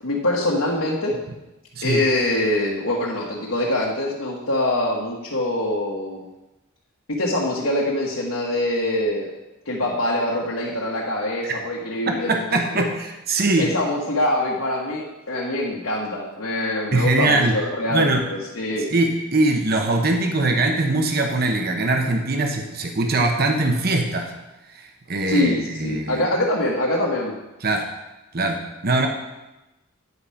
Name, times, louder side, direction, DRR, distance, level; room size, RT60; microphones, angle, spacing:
voice 1, 0.0-1.1 1.8-6.3 7.1-9.3 9.6-12.9 13.6-18.9 25.3-27.4, left 1 dB, 80° left, -5 dB, 1.5 m, -24 dB
voice 2, 12.3-13.7 16.9-17.5 17.9-18.3 18.9-24.3 24.7-26.3 27.6-27.8 28.3-29.1, right 2 dB, 45° right, 3 dB, 0.9 m, -22 dB
9.7 x 5.0 x 5.7 m, 1.0 s
head